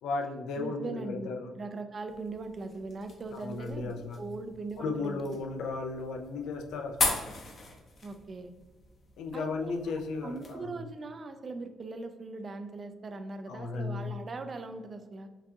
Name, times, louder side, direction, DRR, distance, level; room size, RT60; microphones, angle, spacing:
voice 1, 0.0-1.5 3.3-4.2 4.8-7.2 9.2-10.8 13.5-14.1, left 3 dB, 85° left, 4 dB, 0.4 m, -35 dB
voice 2, 0.6-5.3 8.0-8.5 9.3-9.7 10.2-15.3, right 3 dB, 40° right, 9 dB, 0.4 m, -40 dB
sound 1, 2.1-10.5, left 3 dB, 50° left, 0.7 m, -39 dB
4.6 x 2.5 x 2.7 m, 1.3 s
cardioid pair, 90°, 0 cm